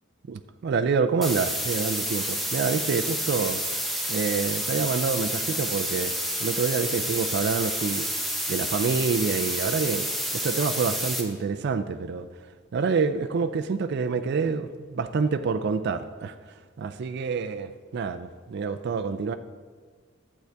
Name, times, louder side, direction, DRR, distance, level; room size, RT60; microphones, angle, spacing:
voice 1, 0.3-3.6 4.1-6.1 6.4-8.1 8.5-12.3 12.7-16.3 16.8-19.4, right 5 dB, 55° right, 8 dB, 0.3 m, -27 dB
sound 1, 1.2-11.2, equal, ahead, 0.9 m, -29 dB
12.0 x 7.9 x 3.4 m, 1.5 s
head